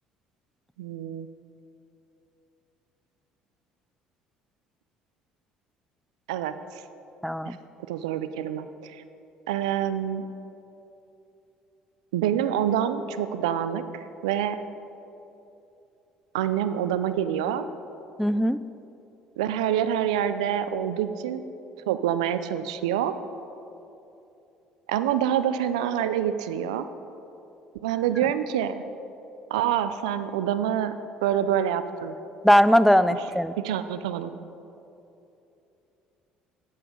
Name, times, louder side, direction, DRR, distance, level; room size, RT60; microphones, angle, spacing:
voice 1, 0.8-1.3 6.3-6.5 7.5-7.6 7.9-9.0 9.5-10.3 12.1-13.8 14.2-14.6 16.3-17.7 19.4-21.4 21.9-23.1 24.9-26.8 27.8-28.8 29.5-30.9 31.2-32.1 33.1-33.2 33.6-34.3, right 10 dB, 85° right, 12 dB, 0.5 m, -26 dB
voice 2, 7.2-7.6 18.2-18.6 32.4-33.5, equal, ahead, 14 dB, 0.4 m, -19 dB
11.5 x 8.5 x 5.2 m, 2.8 s
hypercardioid pair, 70°, 3 cm